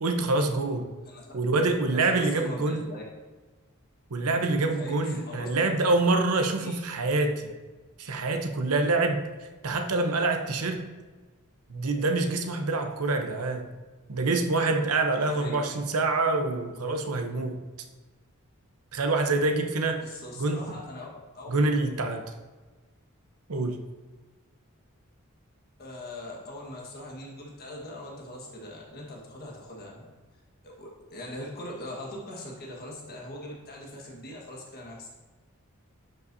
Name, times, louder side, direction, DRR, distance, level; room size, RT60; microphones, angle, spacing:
voice 1, 0.0-0.9 1.3-2.8 4.1-7.5 8.0-9.2 9.6-10.9 11.7-13.7 14.1-17.6 18.9-20.0 20.4-20.6 21.5-22.2 23.5-23.8, right 3 dB, 90° right, 6 dB, 0.8 m, -26 dB
voice 2, 1.9-3.0 4.7-5.5 6.6-6.8 15.3-15.8 20.0-21.1 21.3-21.6 25.8-30.1 30.6-35.2, left 1 dB, 45° left, -2 dB, 1.4 m, -41 dB
10.5 x 5.5 x 2.7 m, 1.3 s
head